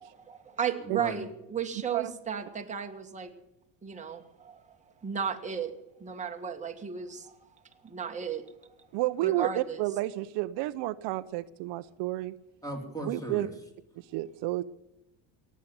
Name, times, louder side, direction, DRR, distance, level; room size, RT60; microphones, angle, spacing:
voice 1, 0.0-3.3 3.8-4.6 5.0-5.7 6.0-7.3 7.8-8.5 9.2-9.8, right 7 dB, 15° right, 2 dB, 1.6 m, -34 dB
voice 2, 0.9-1.2 12.6-13.5, right 1 dB, 10° left, 2 dB, 3.8 m, -37 dB
voice 3, 8.9-12.3 13.1-13.5 14.0-14.6, right 16 dB, 70° right, 13 dB, 0.7 m, -31 dB
18.0 x 7.6 x 9.4 m, 0.90 s
cardioid pair, 125°, 44 cm